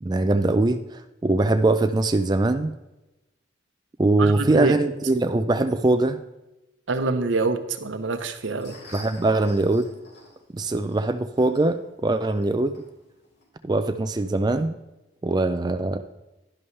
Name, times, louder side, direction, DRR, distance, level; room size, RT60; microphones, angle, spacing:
voice 1, 0.0-2.7 4.0-6.2 8.9-9.9 10.5-12.9 13.6-14.8 15.2-16.0, right 2 dB, 20° right, 8 dB, 0.3 m, -22 dB
voice 2, 4.2-4.8 6.9-8.8, right 3 dB, 80° right, 9 dB, 0.9 m, -25 dB
sound 1, 8.3-13.4, left 1 dB, 60° left, 4.1 m, -50 dB
11.0 x 11.0 x 3.3 m, 1.0 s
head